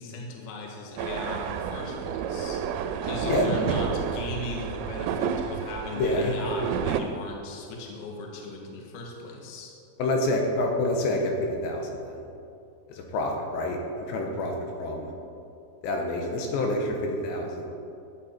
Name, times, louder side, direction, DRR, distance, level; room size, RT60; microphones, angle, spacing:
voice 1, 0.0-2.6 3.0-9.8, left 3 dB, 60° left, 0 dB, 2.4 m, -38 dB
sound 1, 1.0-7.0, right 8 dB, 85° right, 2.8 m, -30 dB
voice 2, 3.2-3.5 6.0-6.4 10.0-12.3 12.9-15.1 15.8-17.7, left 2 dB, 80° left, 1 dB, 3.3 m, -28 dB
13.0 x 8.3 x 4.4 m, 2.6 s
omnidirectional pair, 5.1 m